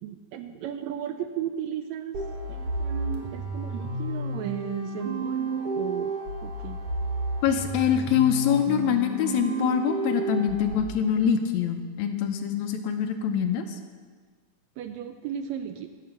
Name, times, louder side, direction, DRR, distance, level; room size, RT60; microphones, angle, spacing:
voice 1, 0.0-6.1 6.4-6.8 14.8-15.9, right 9 dB, 80° right, 8 dB, 1.7 m, -35 dB
sound 1, 2.1-10.7, right 3 dB, 60° right, 2.0 m, -31 dB
voice 2, 7.4-13.8, left 8 dB, 75° left, 6 dB, 1.8 m, -24 dB
12.0 x 5.8 x 7.6 m, 1.5 s
omnidirectional pair, 3.5 m